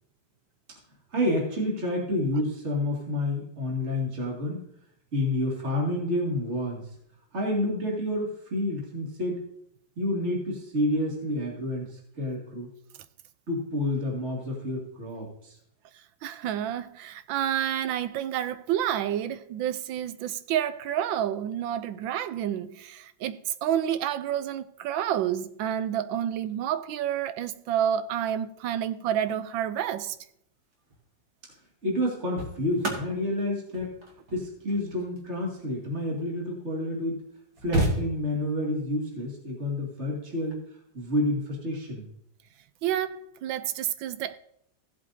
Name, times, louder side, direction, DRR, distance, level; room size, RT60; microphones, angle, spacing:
voice 1, 1.1-4.6 5.1-6.8 7.3-9.4 10.0-12.7 13.5-15.6 31.8-33.9 34.3-37.2 37.6-40.6 40.9-42.0, left 1 dB, 35° right, 2.5 m, -29 dB
voice 2, 16.2-30.2 42.8-44.4, right 10 dB, 75° right, 1.3 m, -29 dB
sound 1, 30.7-31.0 31.9-36.5 37.1-37.2 37.3-38.6 40.3-40.5, right 1 dB, 50° right, 2.1 m, -33 dB
16.0 x 7.8 x 2.7 m
omnidirectional pair, 2.2 m